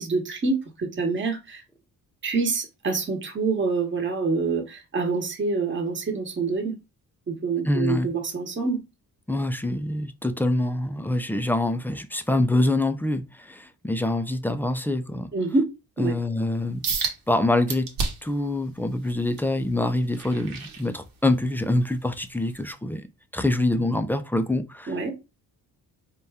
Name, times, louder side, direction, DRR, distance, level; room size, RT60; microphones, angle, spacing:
voice 1, 0.0-1.6 2.2-6.7 7.3-8.8 15.3-15.7 16.0-16.2 24.9-25.1, right 4 dB, 35° right, 1.0 m, -26 dB
voice 2, 7.7-8.1 9.3-15.3 16.0-16.8 17.3-17.9 18.2-23.1 23.3-25.1, left 1 dB, 5° left, 0.3 m, -25 dB
sound 1, 16.8-17.2 17.7-18.4 18.9-21.4 21.9-22.2 22.7-22.8, right 5 dB, 70° right, 1.0 m, -31 dB
4.1 x 2.2 x 3.4 m
cardioid pair, 95°, 35 cm